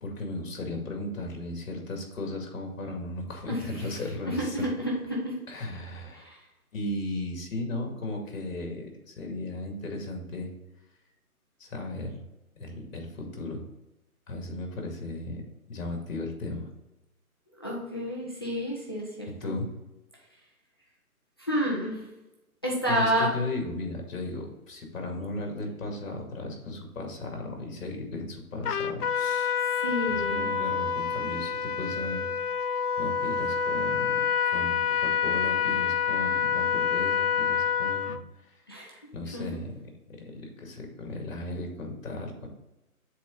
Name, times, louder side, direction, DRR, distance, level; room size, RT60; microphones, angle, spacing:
voice 1, 0.0-4.7 5.5-6.3 6.7-10.5 11.6-12.2 12.6-13.6 14.3-15.4 15.7-16.7 19.4-19.7 22.9-29.6 30.1-32.3 33.0-34.2 34.5-38.2 39.1-39.7 40.2-42.5, left 2 dB, 60° left, 2 dB, 2.3 m, -36 dB
voice 2, 4.2-5.4 6.2-6.3 17.6-19.5 21.4-22.0 22.6-23.3 29.8-30.5 38.7-39.0 39.3-39.4, equal, 20° left, -4 dB, 0.4 m, -29 dB
Trumpet, 28.6-38.2, left 7 dB, 85° left, 0.6 m, -27 dB
7.4 x 4.0 x 3.7 m, 0.98 s
hypercardioid pair, 150°, 45 cm